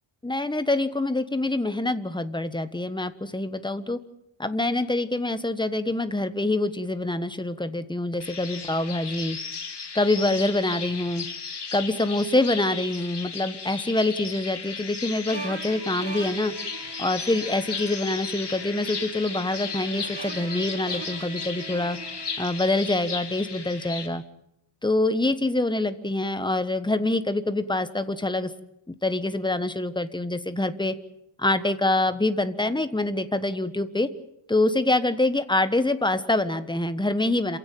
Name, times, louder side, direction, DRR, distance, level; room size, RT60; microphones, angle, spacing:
voice 1, 0.2-4.0 4.4-9.4 9.9-11.3 11.7-16.5 17.0-22.0 22.4-24.2 24.8-28.5 28.9-30.9 31.4-34.1 34.5-37.6, left 2 dB, 10° left, 11 dB, 1.3 m, -25 dB
sound 1, 8.2-24.1, left 5 dB, 60° left, 2.8 m, -35 dB
sound 2, 15.3-23.5, right 5 dB, 60° right, 2.3 m, -42 dB
27.0 x 16.5 x 9.2 m, 0.79 s
wide cardioid pair, 150°, 46 cm